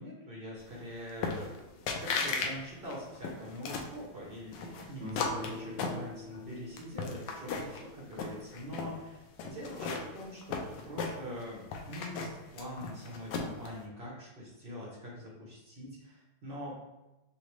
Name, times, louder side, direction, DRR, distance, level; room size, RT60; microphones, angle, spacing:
voice 1, 0.0-16.9, equal, 90° right, -4 dB, 0.4 m, -44 dB
sound 1, 1.2-1.6 1.9-2.5 2.8-3.9 4.5-6.4 6.8-7.8 8.1-8.9 9.4-11.4 11.7-13.7, left 4 dB, 75° left, 1.0 m, -35 dB
sound 2, 5.0-8.6, left 2 dB, 65° right, 1.6 m, -46 dB
6.1 x 2.2 x 3.1 m, 1.0 s
omnidirectional pair, 2.4 m